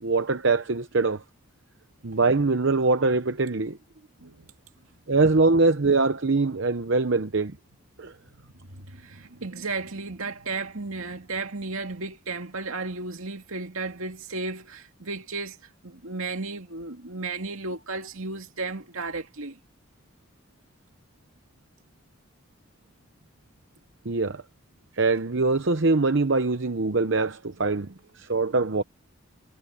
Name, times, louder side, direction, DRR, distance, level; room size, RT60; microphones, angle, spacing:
voice 1, 0.0-1.2 2.0-3.8 5.1-7.6 8.0-8.1 24.0-24.4 24.9-28.8, right 3 dB, 55° right, 0.8 m, -23 dB
voice 2, 4.2-4.5 8.2-15.6 15.8-19.6, right 3 dB, 75° right, 2.3 m, -34 dB
head